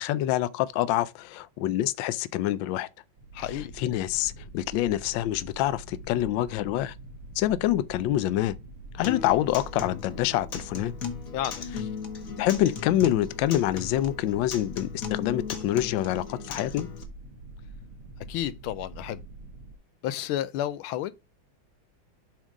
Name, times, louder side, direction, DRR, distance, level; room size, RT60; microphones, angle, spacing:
voice 1, 0.0-2.9 3.8-6.9 7.4-8.6 8.9-10.9 12.4-16.9, left 13 dB, 75° left, 1.2 m, -26 dB
sound 1, 3.2-19.8, right 2 dB, 80° right, 2.1 m, -44 dB
voice 2, 3.3-3.7 11.3-11.6 18.3-19.2 20.0-21.1, left 12 dB, 90° left, 1.5 m, -31 dB
Acoustic guitar, 9.0-17.0, left 6 dB, 50° left, 1.3 m, -38 dB
7.4 x 3.7 x 5.2 m
omnidirectional pair, 2.3 m